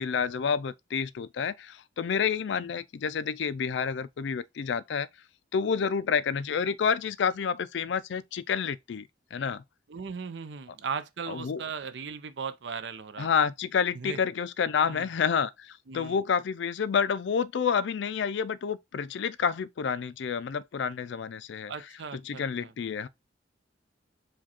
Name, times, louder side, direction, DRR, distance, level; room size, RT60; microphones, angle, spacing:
voice 1, 0.0-5.1 5.5-9.6 11.3-11.6 13.2-21.7 22.2-23.1, left 6 dB, 75° left, 0.4 m, -29 dB
voice 2, 9.9-13.3 13.9-14.2 14.9-15.1 15.9-16.2 21.7-22.7, right 5 dB, 70° right, 0.5 m, -37 dB
4.9 x 2.3 x 4.2 m
head